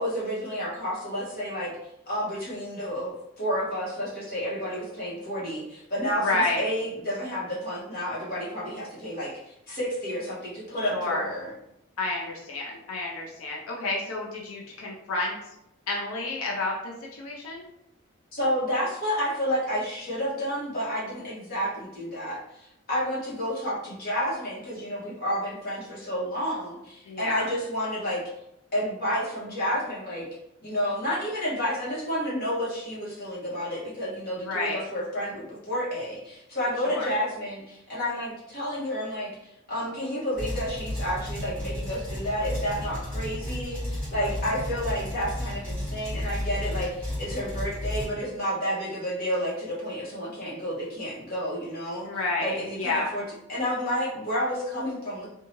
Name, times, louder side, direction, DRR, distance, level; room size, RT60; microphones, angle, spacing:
voice 1, 0.0-1.7 2.1-11.5 18.3-28.2 28.7-30.2 30.6-52.1 52.4-53.2 53.5-55.3, equal, 45° left, -7 dB, 1.1 m, -30 dB
voice 2, 6.2-6.7 10.8-11.3 12.0-15.5 15.9-17.6 27.1-27.5 34.4-34.8 36.8-37.1 44.2-44.3 52.0-53.1, left 2 dB, 80° left, -2 dB, 0.5 m, -30 dB
sound 1, 40.3-48.1, left 1 dB, 5° left, 1.3 m, -33 dB
2.7 x 2.3 x 2.9 m, 0.82 s
head